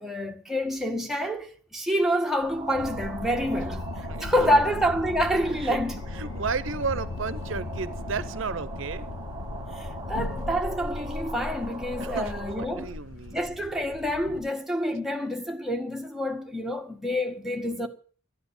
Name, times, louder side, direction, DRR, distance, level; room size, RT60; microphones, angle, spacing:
voice 1, 0.0-3.8 4.2-6.0 9.8-12.9 13.3-17.9, equal, ahead, 1.8 m, -27 dB
sound 1, 2.4-12.7, right 3 dB, 20° right, 1.0 m, -41 dB
sound 2, 2.7-14.5, left 2 dB, 85° left, 0.8 m, -37 dB
voice 2, 4.1-4.4 5.5-5.8 6.1-9.0 12.0-13.4, right 5 dB, 70° right, 0.8 m, -33 dB
12.5 x 10.0 x 8.8 m
head